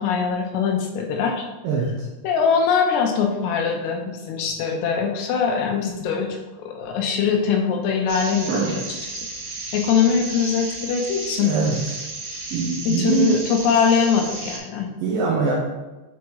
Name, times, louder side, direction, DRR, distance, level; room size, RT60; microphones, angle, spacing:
voice 1, 0.0-1.5 2.2-8.6 9.2-9.3 9.7-11.6 12.9-14.9, left 6 dB, 80° left, 2 dB, 2.7 m, -22 dB
voice 2, 1.6-2.1 8.5-8.8 11.4-11.8 12.5-13.4 15.0-15.5, right 5 dB, 85° right, -2 dB, 2.0 m, -23 dB
sound 1, 8.1-14.6, right 3 dB, 65° right, 3.3 m, -33 dB
7.0 x 4.7 x 3.2 m, 1.1 s
omnidirectional pair, 5.0 m